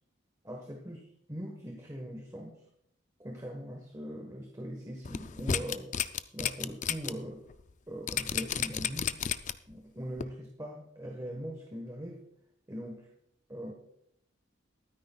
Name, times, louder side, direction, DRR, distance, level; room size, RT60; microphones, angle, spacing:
voice 1, 0.4-1.0 1.3-2.6 3.2-5.9 6.3-7.5 7.9-9.2 9.7-12.3 12.7-13.1 13.5-13.7, equal, 20° right, 1 dB, 1.3 m, -41 dB
sound 1, 5.0-7.1 7.5-7.6 8.1-9.7 10.2-10.3, left 8 dB, 40° left, 0.4 m, -32 dB
22.0 x 9.6 x 2.3 m, 0.75 s
head